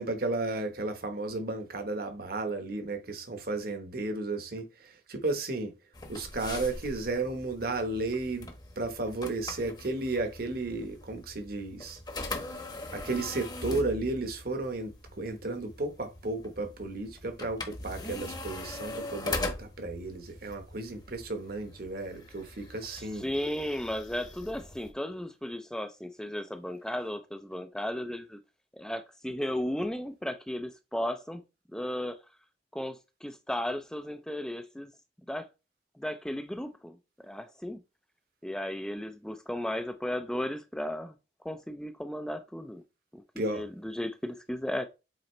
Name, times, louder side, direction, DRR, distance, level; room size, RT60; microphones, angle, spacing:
voice 1, 0.0-5.7 6.1-8.5 8.8-12.0 12.9-23.2 43.4-43.7, right 2 dB, 55° right, 1.1 m, -33 dB
sound 1, 5.9-24.9, left 2 dB, 25° left, 0.9 m, -41 dB
voice 2, 22.9-28.4 28.7-31.4 31.7-32.2 32.7-34.9 35.3-35.5 36.0-37.8 38.4-41.1 41.4-42.8 43.1-44.9, left 1 dB, 5° left, 0.4 m, -35 dB
7.7 x 4.1 x 3.2 m
head